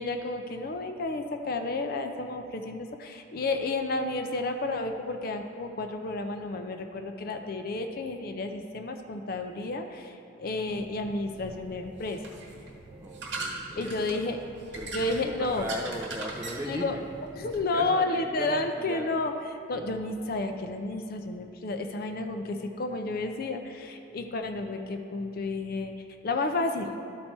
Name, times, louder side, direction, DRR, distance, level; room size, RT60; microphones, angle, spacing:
voice 1, 0.0-12.2 13.8-14.4 14.9-15.7 16.7-17.0 17.3-25.9 26.2-26.9, left 2 dB, 50° left, 6 dB, 0.5 m, -31 dB
sound 1, 10.7-17.6, right 2 dB, 60° right, 1.3 m, -41 dB
voice 2, 13.0-14.1 14.8-17.0 17.4-19.0, equal, 15° right, 1 dB, 0.5 m, -38 dB
12.5 x 4.3 x 4.5 m, 2.6 s
head